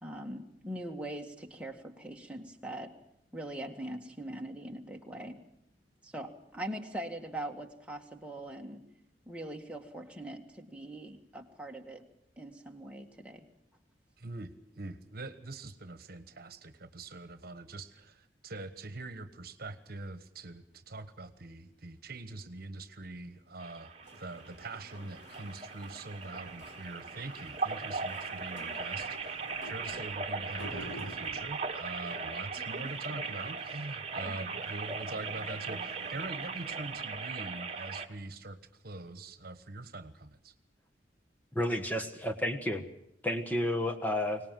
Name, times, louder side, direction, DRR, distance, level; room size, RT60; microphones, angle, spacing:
voice 1, 0.0-2.9 3.3-5.4 6.0-8.9 9.3-12.0 12.4-13.5 32.8-32.9 34.2-34.4, right 1 dB, 5° right, 1 dB, 1.9 m, -42 dB
voice 2, 14.2-40.5, right 2 dB, 55° right, 12 dB, 1.4 m, -43 dB
sound 1, 23.6-38.1, right 4 dB, 35° right, 1.5 m, -39 dB
sound 2, 24.0-37.0, equal, 80° left, 6.0 m, -51 dB
voice 3, 41.5-42.8 43.2-44.4, left 1 dB, 10° left, 4 dB, 1.5 m, -31 dB
24.0 x 19.0 x 7.6 m, 0.75 s
head